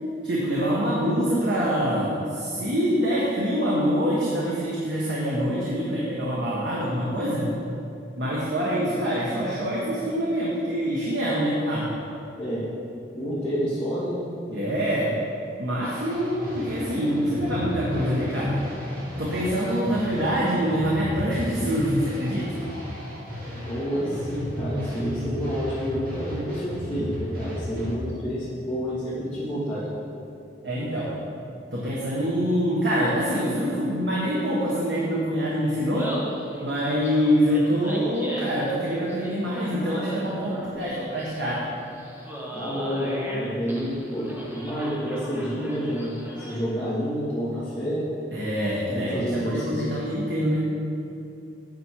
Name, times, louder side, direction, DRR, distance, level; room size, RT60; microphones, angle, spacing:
voice 1, 0.2-7.4 8.2-11.9 14.5-15.1 15.6-18.6 19.2-22.5 30.6-31.1 31.7-36.1 36.6-41.7 48.3-50.7, equal, 75° right, -6 dB, 1.5 m, -25 dB
voice 2, 13.1-14.2 23.7-29.9 42.5-48.1 48.9-50.0, equal, 10° left, -13 dB, 2.3 m, -29 dB
sound 1, 15.8-27.9, left 1 dB, 55° right, 2.2 m, -33 dB
Laughter, 35.8-46.8, equal, 10° right, 1.2 m, -38 dB
9.3 x 7.1 x 4.8 m, 2.7 s
head